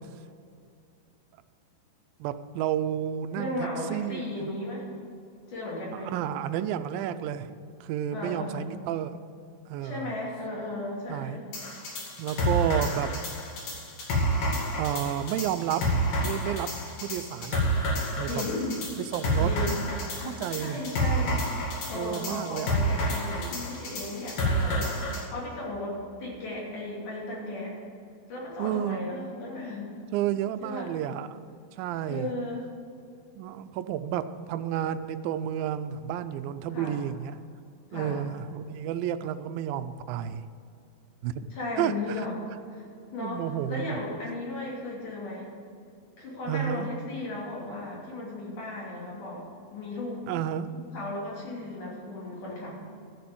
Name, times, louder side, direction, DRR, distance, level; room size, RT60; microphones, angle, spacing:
voice 1, 2.2-3.6 3.9-4.5 6.0-7.5 7.8-9.2 9.7-10.1 11.1-11.4 12.2-13.1 14.8-15.8 16.2-16.7 17.0-17.6 18.2-18.4 19.0-19.5 20.2-20.8 21.9-22.7 28.6-29.1 30.1-31.4 31.8-32.3 33.4-37.4 37.9-40.5 41.2-42.3 43.2-44.0 46.5-46.9 50.3-50.7, right 10 dB, 80° right, 11 dB, 2.3 m, -31 dB
voice 2, 3.4-4.9 5.5-6.1 8.1-8.7 9.8-11.5 18.3-18.8 19.4-19.8 20.1-25.0 25.3-27.8 28.3-29.9 30.6-30.9 32.1-32.6 36.7-37.0 37.9-38.2 41.5-42.3 42.7-42.8 43.1-45.5 46.2-49.5 49.7-50.3 50.7-52.8, left 2 dB, 60° left, -5 dB, 4.5 m, -35 dB
sound 1, 11.5-25.2, equal, 75° left, 4.0 m, -29 dB
13.0 x 7.0 x 7.8 m, 2.5 s
omnidirectional pair, 4.2 m